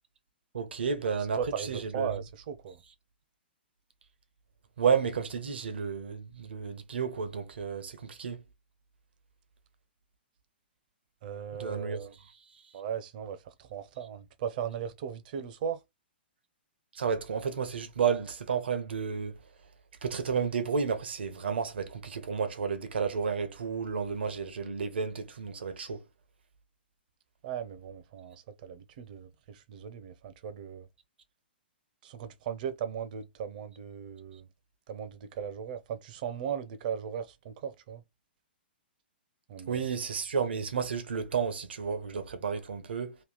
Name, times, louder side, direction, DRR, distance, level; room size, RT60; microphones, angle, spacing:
voice 1, 0.5-1.4 1.7-2.1 4.8-8.4 11.6-12.0 16.9-19.4 20.0-26.0 39.7-43.2, right 6 dB, 75° right, 1.0 m, -31 dB
voice 2, 1.4-2.8 11.2-12.1 12.7-15.8 27.4-30.9 32.0-34.5 34.9-38.0 39.5-39.8, right 8 dB, 50° right, 0.8 m, -37 dB
3.2 x 2.7 x 4.0 m
hypercardioid pair, 125°, 6 cm